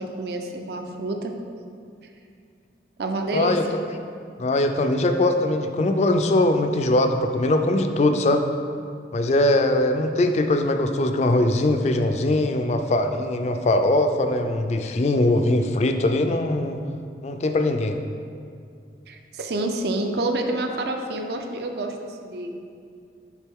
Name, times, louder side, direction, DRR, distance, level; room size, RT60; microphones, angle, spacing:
voice 1, 0.0-1.3 3.0-3.8 19.1-22.6, right 2 dB, 60° right, 4 dB, 0.5 m, -28 dB
voice 2, 3.3-3.6 4.4-8.4 9.1-16.8 17.2-18.0, left 1 dB, 40° left, 6 dB, 0.3 m, -21 dB
7.3 x 3.7 x 3.6 m, 2.4 s
head